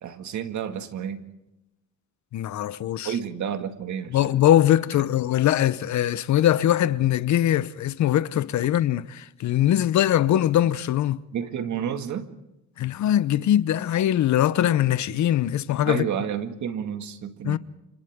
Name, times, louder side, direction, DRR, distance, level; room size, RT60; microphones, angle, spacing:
voice 1, 0.0-1.3 3.0-4.3 11.3-12.3 14.6-14.8 15.8-17.6, right 8 dB, 70° right, 2.1 m, -30 dB
voice 2, 2.3-3.1 4.1-11.2 12.8-16.1 17.4-17.6, left 12 dB, 70° left, 0.9 m, -22 dB
29.5 x 26.5 x 3.7 m
cardioid pair, 90°, 30 cm